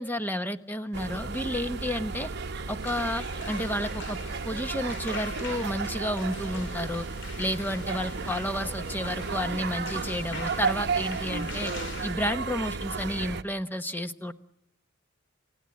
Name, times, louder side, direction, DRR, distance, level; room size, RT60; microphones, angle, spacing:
voice 1, 0.0-2.3 2.7-4.2 4.5-7.0 7.4-11.7 12.0-14.3, equal, 10° left, 9 dB, 1.0 m, -31 dB
sound 1, 0.9-13.4, right 4 dB, 55° right, 0.9 m, -33 dB
sound 2, 2.8-12.1, left 3 dB, 60° left, 3.2 m, -43 dB
30.0 x 16.5 x 8.4 m, 0.84 s
head